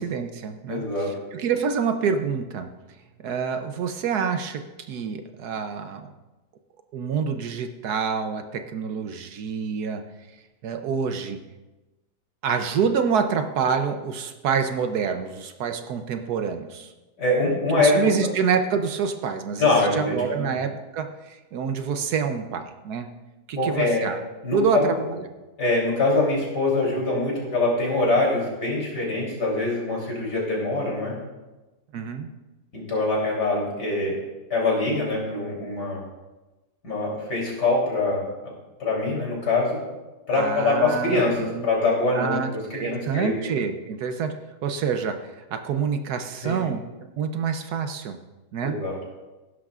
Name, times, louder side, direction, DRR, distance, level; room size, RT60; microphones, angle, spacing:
voice 1, 0.0-2.7 3.2-6.1 6.9-10.0 10.6-11.4 12.4-16.9 17.8-23.1 23.5-24.2 24.5-25.2 31.9-32.3 40.3-41.7 42.1-46.9 47.2-48.2 48.5-48.8, right 6 dB, 70° right, 7 dB, 1.2 m, -27 dB
voice 2, 0.7-1.1 17.2-18.0 19.6-20.5 23.6-24.1 24.4-24.9 25.6-31.2 32.7-34.2 34.5-36.0 36.8-38.2 38.8-39.8 40.3-42.4 42.7-43.4 46.4-46.6 48.6-49.0, left 2 dB, 65° left, -3 dB, 4.0 m, -24 dB
16.0 x 11.5 x 2.4 m, 1.1 s
omnidirectional pair, 1.9 m